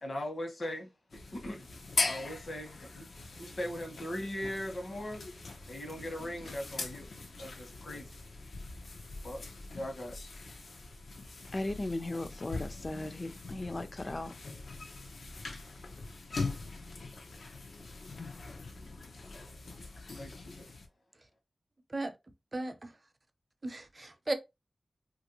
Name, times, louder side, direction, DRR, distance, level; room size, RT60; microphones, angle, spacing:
voice 1, 0.0-1.7 2.0-3.0 3.3-5.2 5.6-7.1 7.4-8.1 9.2-9.4 9.7-10.2 20.1-20.7, left 1 dB, 60° left, 1.1 m, -39 dB
sound 1, 1.1-20.9, left 3 dB, 90° left, 0.6 m, -41 dB
voice 2, 11.5-14.3, left 2 dB, 40° left, 0.4 m, -37 dB
voice 3, 23.6-24.3, right 2 dB, 40° right, 0.6 m, -35 dB
3.2 x 2.5 x 2.9 m
wide cardioid pair, 75°, 0 cm